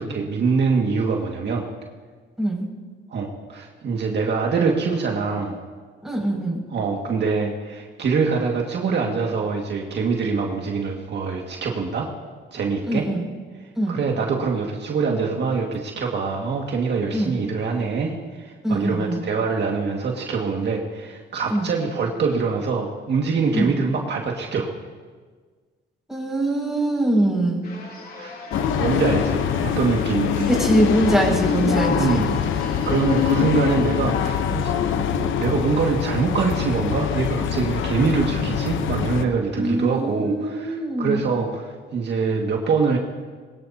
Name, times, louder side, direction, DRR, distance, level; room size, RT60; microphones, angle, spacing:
voice 1, 0.0-1.7 3.1-5.6 6.7-12.1 12.5-13.1 13.9-24.8 28.2-28.4 28.7-30.5 31.9-32.4 32.9-34.7 35.0-43.0, right 5 dB, 60° right, 0 dB, 2.0 m, -24 dB
voice 2, 6.0-6.6 12.8-13.3 13.7-14.0 17.1-17.4 18.6-19.2 21.5-21.7 23.5-23.7 26.1-27.7 30.5-32.3 39.5-41.3, right 1 dB, ahead, -3 dB, 6.2 m, -23 dB
sound 1, 27.6-34.9, left 3 dB, 50° left, 3.2 m, -39 dB
sound 2, 28.5-39.2, left 8 dB, 80° left, 0.9 m, -24 dB
22.0 x 19.5 x 2.8 m, 1.5 s
cardioid pair, 90°, 20 cm